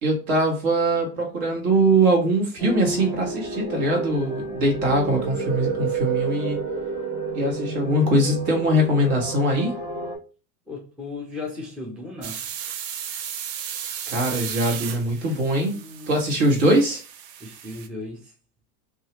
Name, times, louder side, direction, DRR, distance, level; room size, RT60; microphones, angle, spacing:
voice 1, 0.0-6.6 7.3-9.7 14.1-15.8 16.1-17.0, right 1 dB, 60° right, 1.5 m, -22 dB
sound 1, 2.6-10.2, right 4 dB, 35° right, 1.2 m, -30 dB
voice 2, 10.7-12.5 15.7-16.2 17.4-18.3, left 3 dB, ahead, 0.4 m, -36 dB
sound 2, 12.2-17.9, right 8 dB, 75° right, 0.6 m, -35 dB
2.7 x 2.4 x 2.9 m
hypercardioid pair, 105°, 50 cm